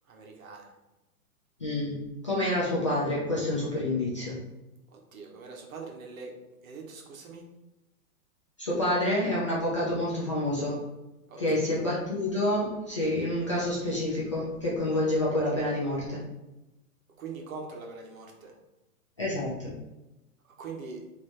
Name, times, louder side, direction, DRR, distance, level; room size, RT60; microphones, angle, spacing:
voice 1, 0.1-0.7 4.9-6.3 6.6-7.5 11.3-11.8 17.2-18.5 20.6-21.0, right 4 dB, 65° right, 1 dB, 1.2 m, -42 dB
voice 2, 1.6-4.4 8.6-10.8 11.4-16.2 19.2-19.7, left 1 dB, 20° left, -7 dB, 0.4 m, -28 dB
3.3 x 3.0 x 4.3 m, 0.98 s
hypercardioid pair, 165°, 45 cm